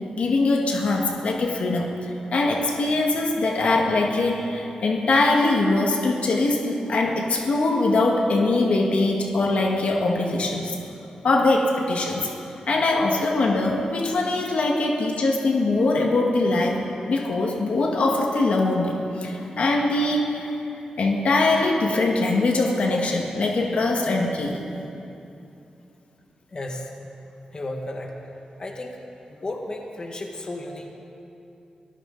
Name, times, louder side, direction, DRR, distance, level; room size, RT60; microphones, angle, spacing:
voice 1, 0.2-1.9 2.3-10.8 11.2-20.5 21.0-24.6, left 2 dB, 70° left, 1 dB, 1.6 m, -22 dB
voice 2, 26.5-26.9 27.5-28.1 28.6-29.0 29.3-30.9, left 1 dB, 40° left, 1 dB, 1.8 m, -33 dB
23.5 x 14.5 x 3.9 m, 2.8 s
wide cardioid pair, 90°, 2 cm